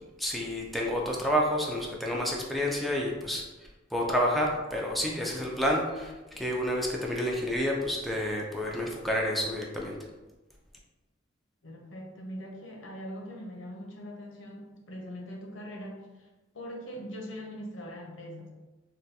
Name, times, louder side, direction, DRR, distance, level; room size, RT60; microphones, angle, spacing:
voice 1, 0.2-3.4 3.9-10.0, equal, ahead, -2 dB, 0.3 m, -29 dB
voice 2, 11.6-16.3 16.5-18.5, equal, 90° left, 0 dB, 0.7 m, -41 dB
3.4 x 2.2 x 2.7 m, 1.1 s
head